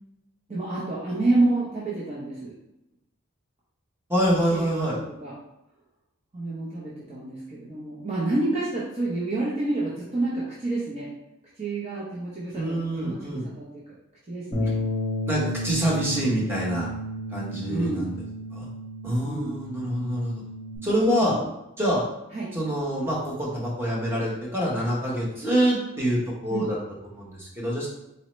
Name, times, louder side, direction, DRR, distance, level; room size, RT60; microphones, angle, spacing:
voice 1, 0.5-2.5 4.5-5.3 6.3-11.1 11.6-13.8 14.3-14.7 17.7-18.1 19.2-19.6 21.2-21.4 22.3-22.5 26.5-26.7, right 2 dB, 30° right, -7 dB, 0.7 m, -28 dB
voice 2, 4.1-5.0 12.5-13.4 15.3-16.9 17.3-18.1 18.5-18.7 19.0-20.4 20.8-21.4 21.8-22.0 22.5-26.8 27.1-27.9, equal, 10° right, -5 dB, 1.0 m, -26 dB
Bass guitar, 14.5-20.8, left 1 dB, 20° left, 0.8 m, -32 dB
4.2 x 2.7 x 3.1 m, 0.88 s
head